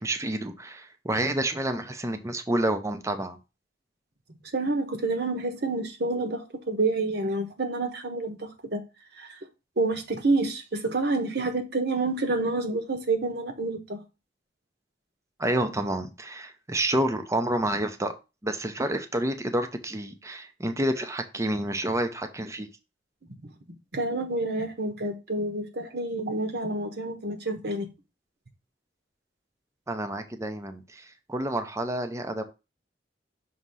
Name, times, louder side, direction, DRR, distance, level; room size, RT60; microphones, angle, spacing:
voice 1, 0.0-3.4 15.4-18.1 18.4-22.7 29.9-32.4, right 1 dB, 15° right, 0.6 m, -29 dB
voice 2, 4.5-8.8 9.1-9.4 9.8-14.0 23.4-23.5 23.9-27.9, right 2 dB, 60° right, 1.1 m, -28 dB
6.2 x 2.8 x 5.3 m
head